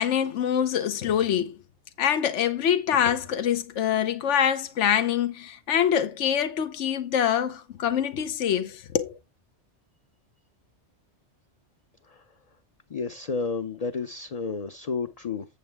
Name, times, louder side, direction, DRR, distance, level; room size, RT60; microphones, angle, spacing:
voice 1, 0.0-1.5 2.0-9.2, left 9 dB, 80° left, 1.2 m, -25 dB
voice 2, 12.9-15.5, left 4 dB, 40° left, 0.6 m, -31 dB
8.1 x 7.8 x 3.4 m
omnidirectional pair, 1.2 m